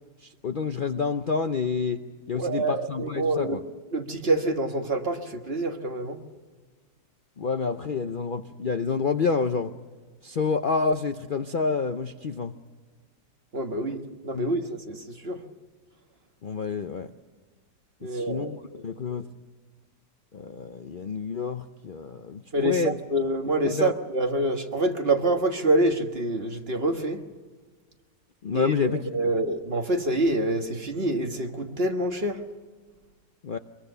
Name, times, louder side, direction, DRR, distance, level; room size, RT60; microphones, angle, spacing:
voice 1, 0.2-2.0 2.3-3.6 7.4-9.7 10.2-12.5 14.3-14.5 16.4-17.1 18.0-19.3 20.3-23.0 23.8-23.9 28.4-29.3 33.4-33.6, left 5 dB, 75° left, 0.4 m, -28 dB
voice 2, 2.3-3.6 3.9-6.2 13.5-14.0 14.2-15.4 18.0-18.8 22.5-27.2 28.5-28.7 29.1-32.4, right 1 dB, 35° right, 1.6 m, -26 dB
24.0 x 22.5 x 6.8 m
omnidirectional pair, 1.9 m